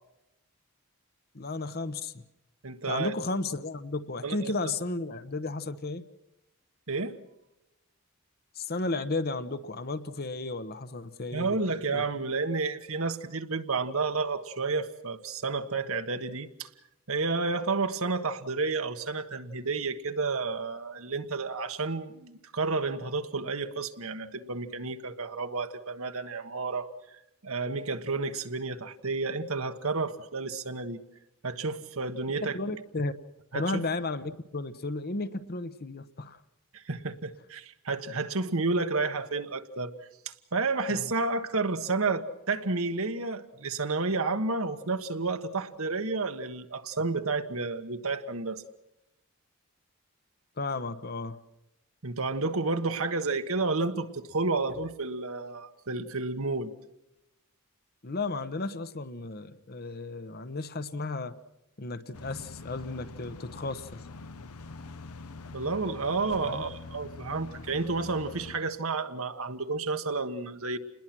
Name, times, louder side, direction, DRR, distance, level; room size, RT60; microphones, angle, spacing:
voice 1, 1.3-2.2 2.8-6.0 8.6-11.6 11.9-12.0 32.5-33.1 33.5-36.4 40.9-41.1 50.6-51.4 58.0-61.3 61.8-64.0 66.4-66.6, left 3 dB, 45° left, 11 dB, 1.0 m, -34 dB
voice 2, 2.6-3.1 4.2-4.7 6.9-7.2 11.3-16.7 17.1-26.9 27.4-31.0 31.4-32.6 33.5-33.9 36.7-39.9 40.2-48.6 52.0-56.7 65.5-70.8, right 3 dB, 70° right, 8 dB, 1.4 m, -31 dB
sound 1, 62.1-68.6, left 3 dB, 85° left, 1.0 m, -44 dB
28.5 x 21.0 x 6.1 m, 0.89 s
head